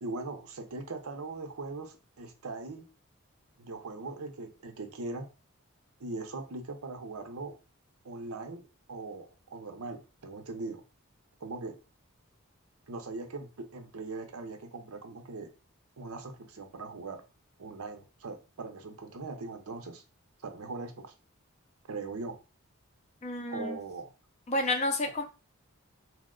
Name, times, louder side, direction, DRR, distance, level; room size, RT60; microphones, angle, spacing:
voice 1, 0.0-2.9 3.6-5.3 6.0-7.5 8.0-8.6 8.9-10.8 11.4-11.7 12.9-15.5 16.0-17.2 17.6-20.0 20.4-21.1 21.9-22.3 23.5-24.1, right 3 dB, 80° right, 6 dB, 0.6 m, -40 dB
voice 2, 23.2-23.8 24.5-25.2, left 2 dB, 30° left, 5 dB, 0.4 m, -30 dB
2.9 x 2.1 x 3.6 m, 0.32 s
head